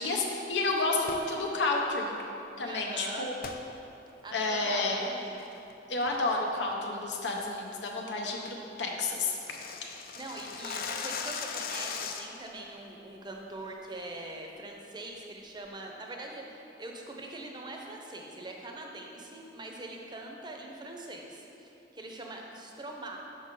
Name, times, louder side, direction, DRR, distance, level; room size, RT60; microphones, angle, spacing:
voice 1, 0.0-2.2 2.6-3.3 4.3-5.0 5.9-8.4 8.8-9.4 9.8-10.0, left 3 dB, 90° left, 0 dB, 0.7 m, -30 dB
sound 1, 1.0-1.3 3.4-3.6 4.1-4.2 4.7-5.0 5.4-5.7 6.1-6.3 6.7-6.8 7.2-7.4 7.8-7.9 8.2-8.3 8.5-8.6 8.8-12.5, left 6 dB, 55° left, 0.4 m, -38 dB
voice 2, 2.7-3.3 4.2-5.4 10.2-23.2, right 2 dB, 25° right, 1 dB, 0.6 m, -43 dB
5.6 x 5.5 x 3.7 m, 2.8 s
head